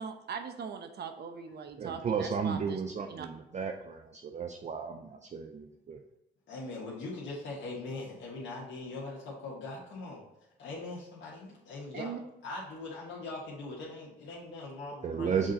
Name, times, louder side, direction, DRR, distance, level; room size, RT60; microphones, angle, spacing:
voice 1, 0.0-2.8 3.1-3.3 11.9-12.2, right 6 dB, 55° right, 7 dB, 0.8 m, -40 dB
voice 2, 1.8-6.0 15.0-15.5, right 6 dB, 35° right, 5 dB, 0.5 m, -34 dB
voice 3, 6.5-10.2 10.6-12.1 12.4-15.5, left 2 dB, 70° left, -6 dB, 1.4 m, -41 dB
6.3 x 3.8 x 4.1 m, 0.93 s
cardioid pair, 90°, 20 cm